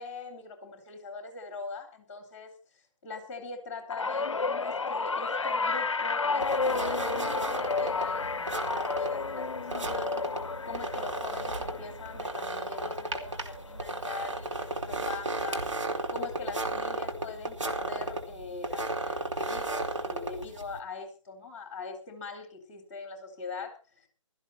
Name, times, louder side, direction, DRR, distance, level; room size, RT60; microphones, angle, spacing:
voice 1, 0.0-10.1 10.6-15.7 16.1-24.1, left 4 dB, 25° left, 5 dB, 4.0 m, -42 dB
sound 1, 3.9-14.3 14.7-15.1 16.2-16.3, left 4 dB, 65° left, 0.6 m, -32 dB
sound 2, 6.4-20.8, right 2 dB, 65° right, 2.6 m, -35 dB
16.5 x 13.5 x 4.3 m, 0.35 s
figure-of-eight pair, 145°, 17 cm